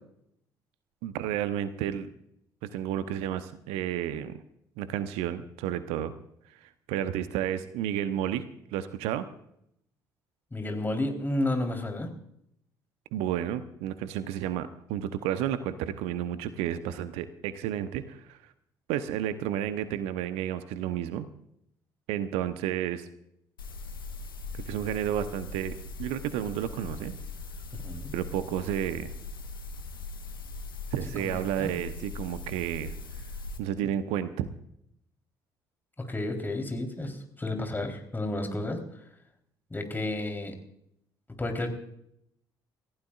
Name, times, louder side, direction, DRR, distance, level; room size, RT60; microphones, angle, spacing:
voice 1, 1.0-2.1 2.6-4.4 4.8-6.1 6.5-8.4 8.7-9.3 13.1-18.4 18.9-21.3 22.1-23.1 24.5-27.1 28.1-29.1 30.9-32.9 33.6-34.5, right 11 dB, 65° right, 12 dB, 1.0 m, -31 dB
voice 2, 10.5-12.1 27.7-28.1 31.2-31.7 36.0-38.8 39.7-40.5 41.4-41.7, left 1 dB, 15° left, 4 dB, 3.8 m, -31 dB
sound 1, 23.6-33.6, left 3 dB, 85° left, 1.3 m, -40 dB
28.5 x 15.5 x 2.5 m, 0.74 s
figure-of-eight pair, 50°, 11 cm